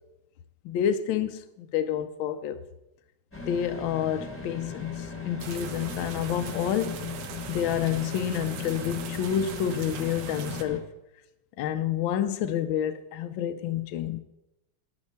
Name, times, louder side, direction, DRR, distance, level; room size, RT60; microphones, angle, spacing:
voice 1, 0.6-2.6 3.5-7.0 7.5-10.9 11.6-14.2, left 9 dB, 75° left, 1.3 m, -29 dB
sound 1, 3.3-10.8, left 5 dB, 10° left, 1.1 m, -37 dB
sound 2, 5.4-10.6, right 8 dB, 90° right, 1.7 m, -40 dB
11.0 x 10.5 x 4.3 m
omnidirectional pair, 2.4 m